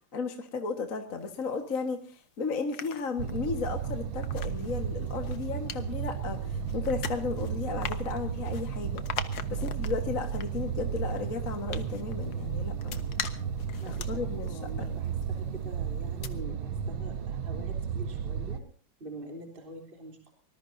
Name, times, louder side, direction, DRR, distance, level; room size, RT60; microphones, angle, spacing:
voice 1, 0.1-9.0 9.5-13.1 13.9-15.0, left 4 dB, 45° left, 5 dB, 1.9 m, -34 dB
sound 1, 1.2-2.1 2.5-15.7 16.0-16.3, left 8 dB, 70° left, 2.0 m, -43 dB
sound 2, 3.2-18.6, right 7 dB, 90° right, 1.8 m, -33 dB
voice 2, 13.8-18.6 19.0-20.3, right 2 dB, 25° right, 2 dB, 3.6 m, -45 dB
24.5 x 20.0 x 2.7 m, 0.42 s
omnidirectional pair, 2.1 m